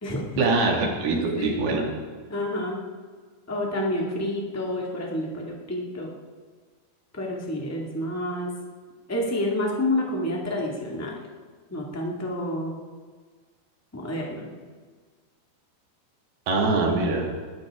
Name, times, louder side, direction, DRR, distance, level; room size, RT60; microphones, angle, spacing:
voice 1, 0.4-1.8 16.5-17.3, right 3 dB, 65° right, 0 dB, 4.0 m, -23 dB
voice 2, 1.1-1.7 2.3-2.8 3.5-6.1 7.2-8.5 9.1-11.2 11.7-12.8 13.9-14.5, left 1 dB, 15° left, -2 dB, 0.6 m, -29 dB
21.0 x 12.5 x 3.8 m, 1.5 s
omnidirectional pair, 4.9 m